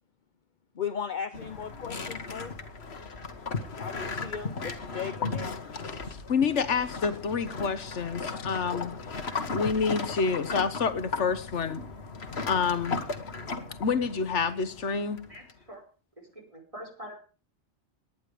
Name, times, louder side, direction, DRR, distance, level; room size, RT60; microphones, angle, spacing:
voice 1, 0.7-2.5 3.8-5.6 8.7-8.8, left 7 dB, 45° left, 11 dB, 0.9 m, -37 dB
sound 1, 1.3-15.5, left 4 dB, 65° left, 1.9 m, -36 dB
voice 2, 6.1-8.9 9.5-11.8 12.5-13.0 13.8-15.2, left 5 dB, 85° left, 12 dB, 1.5 m, -28 dB
voice 3, 15.2-15.8 16.2-17.2, equal, 30° right, 1 dB, 4.9 m, -45 dB
18.5 x 10.5 x 5.1 m, 0.37 s
omnidirectional pair, 1.2 m